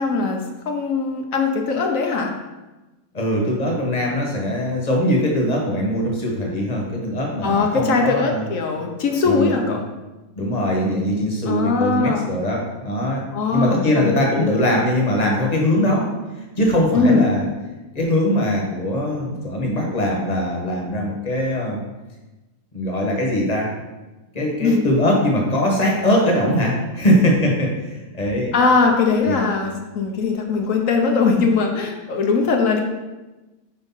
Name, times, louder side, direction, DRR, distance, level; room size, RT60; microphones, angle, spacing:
voice 1, 0.0-2.3 7.4-9.8 11.5-12.2 13.3-14.5 16.9-17.3 24.6-24.8 28.5-32.8, left 4 dB, 60° left, 3 dB, 1.1 m, -20 dB
voice 2, 3.1-8.5 9.2-9.8 10.4-13.2 13.5-16.1 16.5-17.5 17.9-21.8 22.7-23.7 24.3-28.5 29.2-29.4, left 1 dB, 25° left, -1 dB, 1.3 m, -21 dB
4.9 x 4.5 x 5.6 m, 1.1 s
omnidirectional pair, 1.7 m